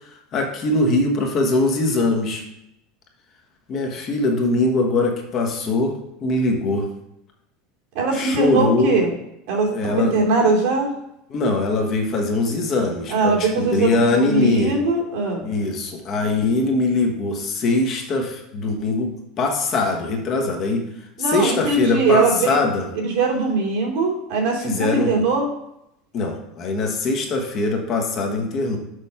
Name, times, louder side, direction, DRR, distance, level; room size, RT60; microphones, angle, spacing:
voice 1, 0.3-2.4 3.7-6.9 8.1-9.0 9.7-10.2 11.3-14.8 15.4-20.9 21.2-22.9 24.6-25.1 26.1-28.8, left 2 dB, 35° left, 2 dB, 1.3 m, -22 dB
voice 2, 7.9-9.1 9.5-10.9 13.1-15.4 21.2-22.6 22.9-25.5, right 3 dB, 60° right, -2 dB, 2.8 m, -21 dB
6.6 x 5.1 x 5.7 m, 0.82 s
supercardioid pair, 160°, 0 cm